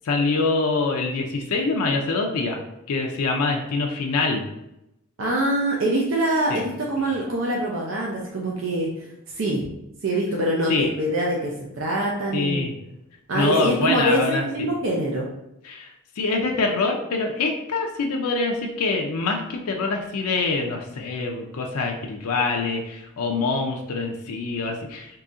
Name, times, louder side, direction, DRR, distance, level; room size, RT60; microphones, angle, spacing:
voice 1, 0.0-2.6 2.9-4.4 6.5-6.6 10.7-10.9 12.3-12.7 13.3-14.7 15.6-25.2, left 3 dB, 85° left, 1 dB, 0.4 m, -25 dB
voice 2, 5.2-9.1 9.3-9.7 10.0-12.6 13.3-15.3, right 1 dB, 60° right, -2 dB, 0.5 m, -24 dB
3.8 x 2.7 x 2.4 m, 0.86 s
head